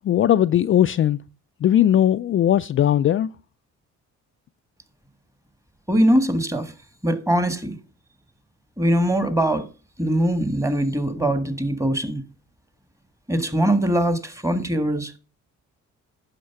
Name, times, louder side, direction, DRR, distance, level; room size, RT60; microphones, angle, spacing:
voice 1, 0.0-1.2 1.6-3.3, left 11 dB, 45° left, 0.4 m, -18 dB
voice 2, 5.9-6.7 7.0-7.8 8.8-9.7 10.0-12.2 13.3-15.1, right 1 dB, 10° right, 1.6 m, -21 dB
9.4 x 6.5 x 5.9 m
cardioid pair, 90°, 30 cm